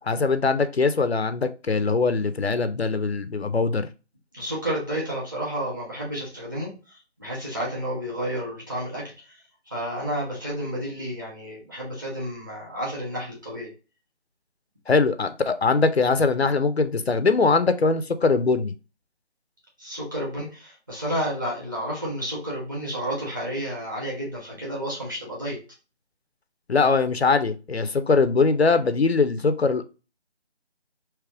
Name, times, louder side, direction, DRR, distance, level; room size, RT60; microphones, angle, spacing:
voice 1, 0.0-3.9 14.9-18.7 26.7-29.8, left 4 dB, 65° left, 10 dB, 0.6 m, -22 dB
voice 2, 4.3-9.4 9.7-13.7 19.8-25.6, equal, 20° right, -5 dB, 1.3 m, -31 dB
3.4 x 3.1 x 4.7 m, 0.31 s
figure-of-eight pair, 170°, 34 cm